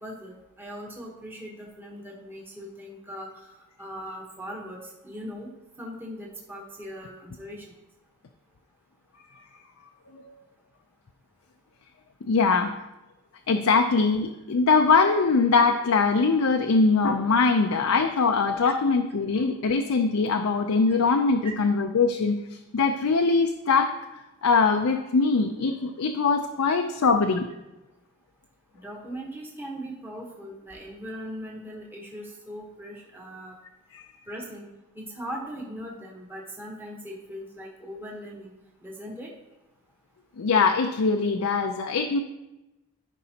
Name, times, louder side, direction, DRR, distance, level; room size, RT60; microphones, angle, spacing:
voice 1, 0.0-3.5 3.8-7.7 18.6-18.7 20.9-21.0 21.4-21.5 26.7-26.8 28.7-33.6 34.3-34.7 34.9-38.5 38.8-39.3, equal, 10° right, -2 dB, 1.0 m, -39 dB
voice 2, 12.3-12.7 13.5-22.4 22.7-27.5 33.9-34.0 40.4-42.2, left 4 dB, 80° left, 5 dB, 0.5 m, -22 dB
13.5 x 5.4 x 2.8 m, 1.0 s
head